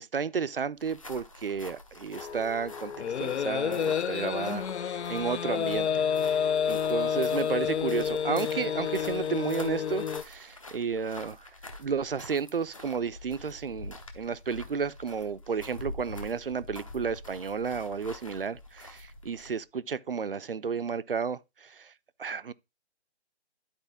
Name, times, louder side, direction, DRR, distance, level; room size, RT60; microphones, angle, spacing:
voice 1, 0.0-2.9 3.2-6.4 6.7-11.5 11.8-21.9 22.2-22.5, right 6 dB, 55° right, 0.5 m, -32 dB
sound 1, 0.7-19.6, left 2 dB, 30° left, 0.8 m, -47 dB
sound 2, 2.1-10.2, left 8 dB, 75° left, 0.5 m, -29 dB
11.5 x 4.3 x 3.4 m
hypercardioid pair, 180°, 34 cm